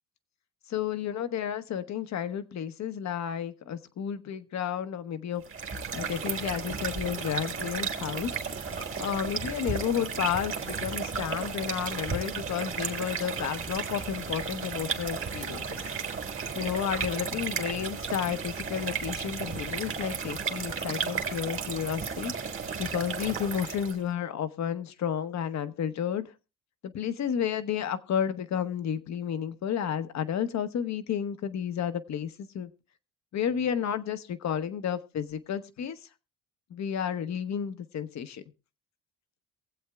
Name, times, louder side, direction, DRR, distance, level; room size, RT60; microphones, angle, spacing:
voice 1, 0.7-5.4 5.9-8.4 8.7-15.8 16.5-22.3 22.8-26.3 26.8-32.7 33.3-36.0 36.7-38.4, left 8 dB, 55° left, 11 dB, 0.9 m, -32 dB
sound 1, 5.4-24.0, right 5 dB, 40° right, 1.7 m, -34 dB
23.0 x 7.9 x 2.3 m, 0.31 s
cardioid pair, 110°, 33 cm